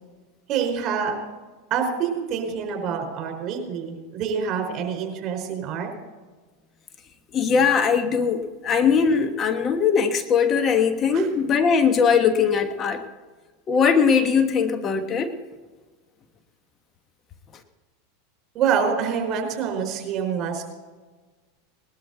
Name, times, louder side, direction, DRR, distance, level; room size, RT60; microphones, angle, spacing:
voice 1, 0.5-1.1 1.7-5.9 11.1-11.3 18.5-20.6, right 7 dB, 45° right, 3 dB, 4.4 m, -26 dB
voice 2, 7.3-13.0 13.7-15.3, left 6 dB, 30° left, 8 dB, 1.2 m, -20 dB
19.5 x 12.5 x 4.0 m, 1.3 s
hypercardioid pair, 105°, 0 cm